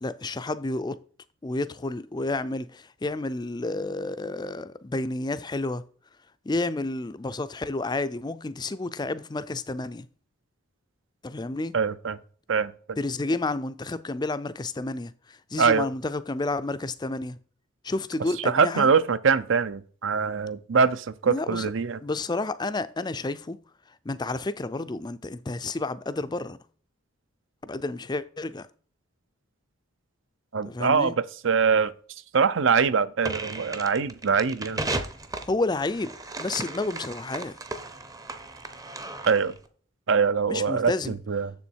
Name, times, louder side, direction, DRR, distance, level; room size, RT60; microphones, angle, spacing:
voice 1, 0.0-1.0 1.4-5.8 6.5-10.1 11.2-11.8 13.0-15.1 15.5-17.4 17.8-18.9 21.3-21.7 22.0-23.6 24.1-26.6 27.7-28.7 30.7-31.1 35.5-36.1 36.4-37.5 40.5-41.2, left 2 dB, 20° left, 0.4 m, -30 dB
voice 2, 11.7-12.2 12.5-12.7 15.6-15.9 18.5-22.0 30.5-31.9 32.3-34.9 39.3-39.5 40.1-41.5, right 5 dB, 60° right, 0.6 m, -23 dB
sound 1, 33.2-39.6, right 2 dB, 15° right, 0.7 m, -35 dB
7.1 x 7.0 x 4.5 m
head